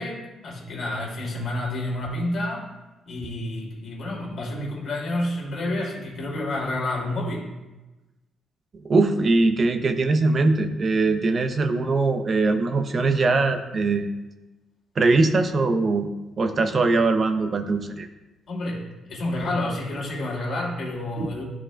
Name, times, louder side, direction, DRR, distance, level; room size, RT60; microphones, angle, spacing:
voice 1, 0.0-2.7 3.1-7.5 18.5-21.4, left 1 dB, 60° left, -2 dB, 2.3 m, -29 dB
voice 2, 8.8-14.1 15.0-16.1 16.4-18.1 21.2-21.3, right 3 dB, 40° right, 7 dB, 0.5 m, -21 dB
11.0 x 4.7 x 2.2 m, 1.1 s
cardioid pair, 90°, 0 cm